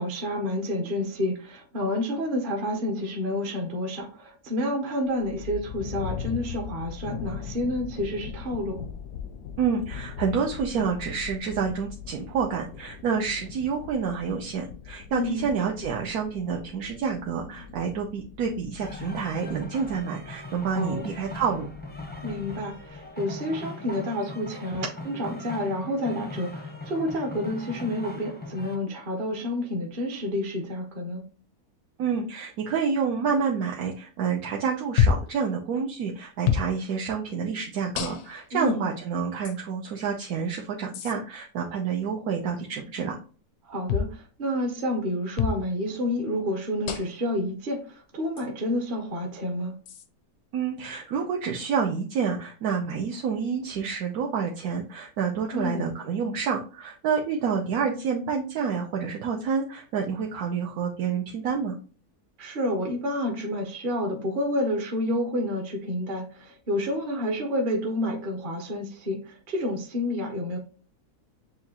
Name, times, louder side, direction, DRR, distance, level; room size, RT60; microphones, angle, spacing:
voice 1, 0.0-8.8 15.1-15.5 20.7-21.0 22.2-31.2 38.5-38.9 43.7-49.7 55.5-55.9 62.4-70.6, left 1 dB, 40° right, 0.8 m, -29 dB
sound 1, 5.0-23.1, left 7 dB, 85° left, 1.1 m, -41 dB
voice 2, 9.6-21.7 32.0-43.2 50.5-61.8, right 6 dB, 75° right, 1.1 m, -28 dB
sound 2, 18.8-28.8, left 2 dB, 15° left, 0.3 m, -39 dB
sound 3, 35.0-35.3 36.4-36.7 37.9-38.5 39.4-39.6 40.9-41.1 43.9-44.1 45.4-45.6 46.9-47.2 48.4-48.5 49.9-50.1, left 8 dB, 70° left, 0.6 m, -25 dB
6.9 x 2.4 x 2.8 m
omnidirectional pair, 1.6 m